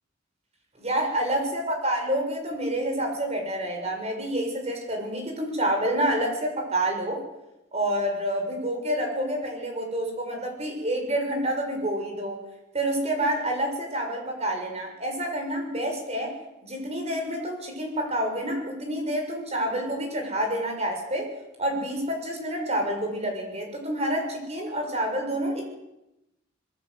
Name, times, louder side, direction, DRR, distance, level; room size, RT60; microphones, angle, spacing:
voice 1, 0.8-7.2 7.7-12.4 12.7-16.3 16.6-21.3 21.6-25.7, right 1 dB, 35° right, 3 dB, 6.9 m, -28 dB
25.5 x 22.5 x 8.1 m, 0.91 s
head